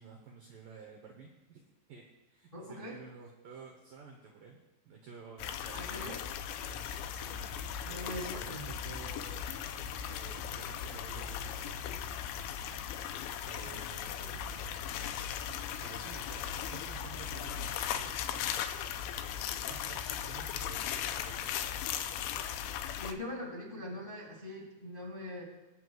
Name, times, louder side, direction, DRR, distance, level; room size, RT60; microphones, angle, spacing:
voice 1, 0.0-4.6 4.9-6.2 6.6-9.5 10.0-12.0 13.4-14.2 15.8-18.6 19.2-21.7, right 5 dB, 80° right, 0 dB, 2.0 m, -52 dB
voice 2, 2.5-3.0 5.7-6.2 7.8-8.7 13.6-13.8 14.2-14.4 23.0-25.4, left 1 dB, 35° left, -4 dB, 0.7 m, -42 dB
sound 1, 5.4-23.1, left 10 dB, 90° left, 3.1 m, -38 dB
sound 2, 7.2-18.1, left 1 dB, 35° right, 3.9 m, -50 dB
23.5 x 7.8 x 2.3 m, 1.1 s
omnidirectional pair, 5.3 m